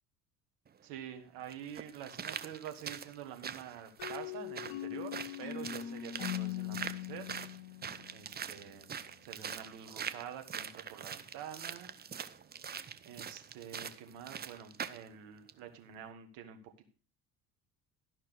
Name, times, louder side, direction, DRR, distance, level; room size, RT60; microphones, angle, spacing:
sound 1, 0.7-0.8 1.5-15.1 15.5-15.6, right 7 dB, 20° right, 0.7 m, -43 dB
voice 1, 0.8-7.3 8.1-8.9 9.2-11.9 13.0-16.9, right 9 dB, 60° right, 6 dB, 1.9 m, -47 dB
sound 2, 4.0-8.7, left 13 dB, 60° left, 1.0 m, -41 dB
12.5 x 5.7 x 6.3 m, 0.39 s
figure-of-eight pair, 60°, 48 cm